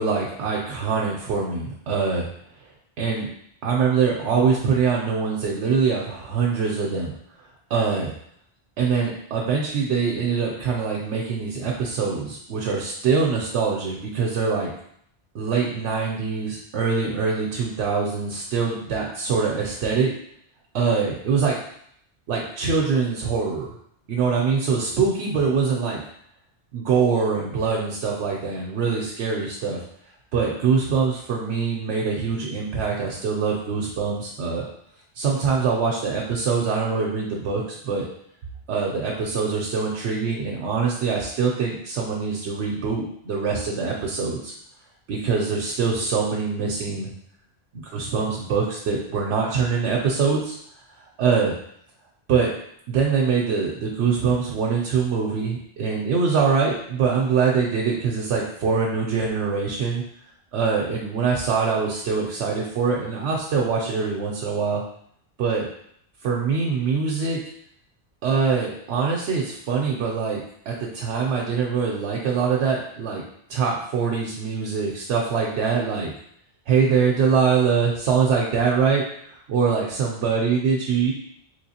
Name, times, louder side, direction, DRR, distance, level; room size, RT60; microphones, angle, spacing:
voice 1, 0.0-2.3 3.0-3.3 3.6-7.1 7.7-8.1 8.8-14.7 15.3-20.1 20.7-21.6 22.3-23.7 24.1-26.0 26.7-29.8 30.3-34.6 35.2-38.1 38.7-44.5 45.1-47.1 47.7-50.6 51.2-51.5 52.3-52.5 52.9-60.0 60.5-64.8 65.4-65.7 66.2-67.4 68.2-70.4 70.7-73.2 73.5-76.1 76.7-81.1, right 5 dB, 85° right, -2 dB, 0.9 m, -23 dB
3.7 x 3.0 x 2.8 m, 0.69 s
omnidirectional pair, 1.1 m